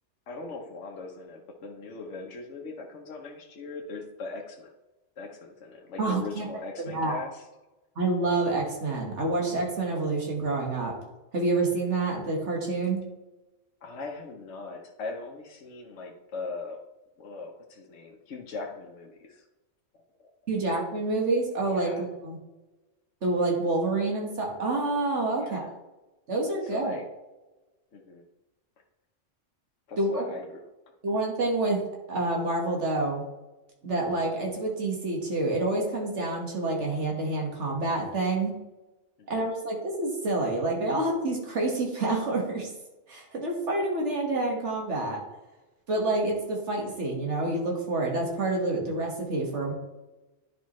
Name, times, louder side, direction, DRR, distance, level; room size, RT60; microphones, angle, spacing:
voice 1, 0.3-4.7 5.2-7.5 13.8-16.8 17.2-19.4 20.2-20.3 21.7-22.0 25.4-25.7 26.7-27.0 27.9-28.2 29.9-30.6 39.2-39.5, left 3 dB, 70° left, 1 dB, 1.2 m, -39 dB
voice 2, 6.0-6.5 6.8-7.2 8.0-11.0 11.3-13.0 20.5-22.4 23.2-25.7 26.3-26.9 30.0-30.2 31.0-31.8 32.1-33.2 33.8-38.6 39.3-42.7 43.1-45.2 45.9-49.7, right 2 dB, 65° right, 0 dB, 1.9 m, -28 dB
10.5 x 5.1 x 3.1 m, 1.1 s
omnidirectional pair, 1.3 m